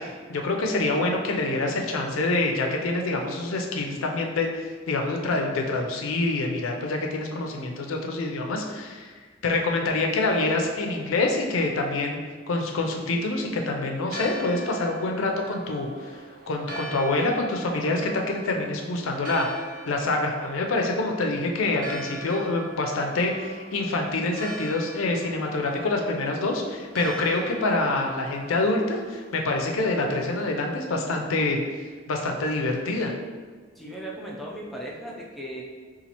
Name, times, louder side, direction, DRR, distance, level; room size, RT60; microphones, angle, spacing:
voice 1, 0.0-9.1 9.4-12.2 12.5-19.5 19.9-31.6 32.1-33.1, left 2 dB, 80° left, 2 dB, 0.5 m, -26 dB
Church bell, 14.0-30.6, right 2 dB, 45° right, 0.6 m, -41 dB
voice 2, 33.8-35.6, right 1 dB, ahead, -4 dB, 0.5 m, -37 dB
4.1 x 2.4 x 2.9 m, 1.5 s
head